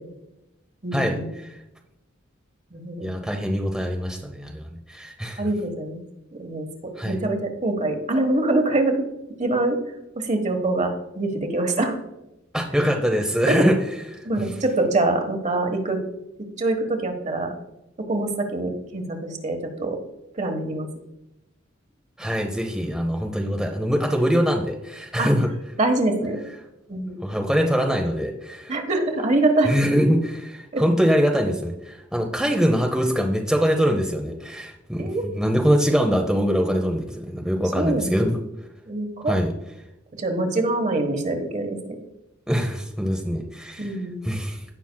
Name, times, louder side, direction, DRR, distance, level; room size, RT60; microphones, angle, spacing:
voice 1, 0.8-1.3 2.7-3.1 5.4-6.0 6.3-9.1 9.4-12.0 13.5-13.6 14.2-16.0 16.6-17.5 18.0-20.0 20.3-20.9 25.2-25.3 25.8-26.4 26.9-27.2 28.7-29.7 30.7-30.8 35.0-35.2 37.5-38.1 38.9-39.4 40.1-42.0 43.8-44.2, right 2 dB, 35° right, 5 dB, 1.2 m, -24 dB
voice 2, 3.0-5.4 7.0-7.2 12.5-13.8 14.1-14.2 22.2-25.5 27.2-28.7 29.7-38.4 39.3-39.5 42.5-43.9 44.2-44.6, equal, 5° right, 2 dB, 0.6 m, -23 dB
16.5 x 5.8 x 2.2 m, 0.90 s
head